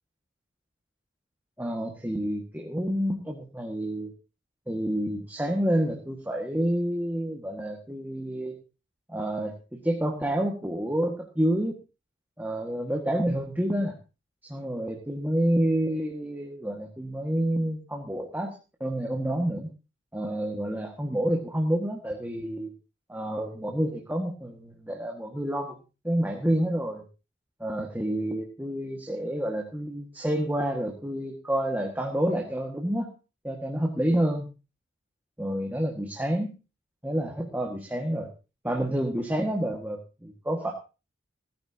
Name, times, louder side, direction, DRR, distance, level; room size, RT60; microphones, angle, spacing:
voice 1, 1.6-4.1 4.7-8.6 9.1-11.7 12.4-13.9 14.4-18.5 18.8-19.7 20.1-22.7 23.1-25.8 26.0-27.0 27.6-33.1 33.4-34.5 35.4-36.5 37.0-38.3 38.6-40.7, right 1 dB, 10° right, 0 dB, 1.9 m, -28 dB
16.5 x 15.0 x 2.9 m, 0.31 s
head